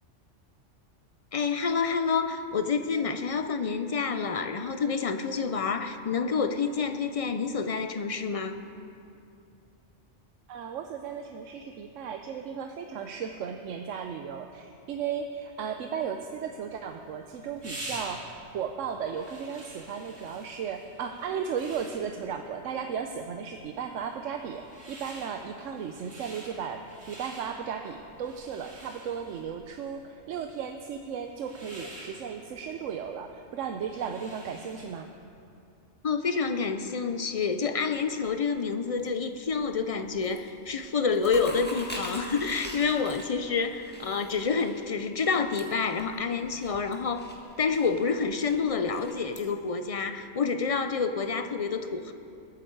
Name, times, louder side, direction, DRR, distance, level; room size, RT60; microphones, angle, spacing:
voice 1, 1.3-8.6 36.0-52.1, left 5 dB, 50° left, 8 dB, 0.4 m, -28 dB
voice 2, 10.5-18.3 18.5-35.1, right 7 dB, 90° right, 5 dB, 1.0 m, -35 dB
sound 1, 16.6-35.1, right 1 dB, 60° right, 2.6 m, -47 dB
sound 2, 37.9-39.1 39.4-39.8 40.1-40.5 40.8-49.4, left 1 dB, 10° left, 1.6 m, -43 dB
20.5 x 9.0 x 4.6 m, 2.6 s
omnidirectional pair, 1.3 m